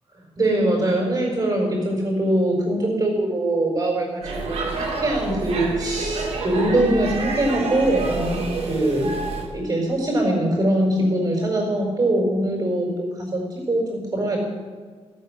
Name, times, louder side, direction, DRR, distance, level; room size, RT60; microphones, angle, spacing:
voice 1, 0.1-9.1 9.5-13.4 13.7-14.4, right 1 dB, 35° right, -1 dB, 4.6 m, -22 dB
Speech / Shout / Subway metro underground, 4.2-9.5, right 3 dB, 80° right, 2.9 m, -29 dB
13.5 x 8.2 x 6.5 m, 1.5 s
wide cardioid pair, 130°, 10 cm